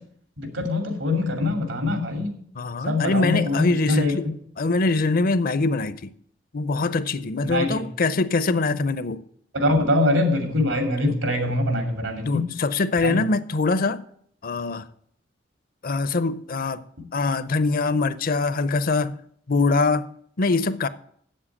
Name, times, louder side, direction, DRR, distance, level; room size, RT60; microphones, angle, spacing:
voice 1, 0.4-2.4 2.9-4.1 7.5-7.8 9.5-12.5 13.0-13.2, left 2 dB, 90° right, 2.6 m, -23 dB
voice 2, 2.5-4.3 4.6-6.1 6.5-9.2 11.1-11.2 12.2-14.0 14.4-14.9 15.8-16.8 17.1-19.2 19.5-20.1 20.4-20.9, left 3 dB, 50° left, 0.6 m, -23 dB
8.0 x 7.4 x 8.4 m
head